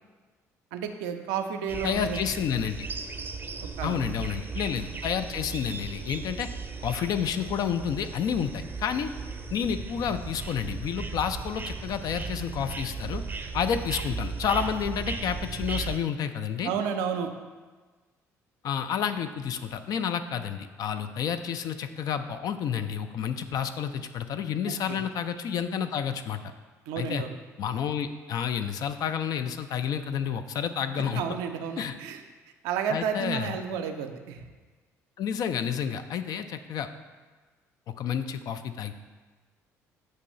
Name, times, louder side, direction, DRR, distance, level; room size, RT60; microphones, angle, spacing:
voice 1, 0.7-2.2 3.6-4.1 16.6-17.3 24.7-25.0 26.9-27.3 30.9-32.2 32.6-34.4, right 7 dB, 65° right, 6 dB, 0.5 m, -32 dB
sound 1, 1.7-16.0, right 4 dB, 25° right, 0.6 m, -36 dB
voice 2, 1.8-2.9 3.8-6.5 6.8-9.1 9.5-13.2 13.5-16.7 18.6-26.4 27.0-27.2 27.6-31.2 31.8-31.9 32.9-33.5 35.2-36.9 37.9-38.9, left 8 dB, 50° left, 9 dB, 0.4 m, -30 dB
6.5 x 3.0 x 5.2 m, 1.4 s
figure-of-eight pair, 55°, 8 cm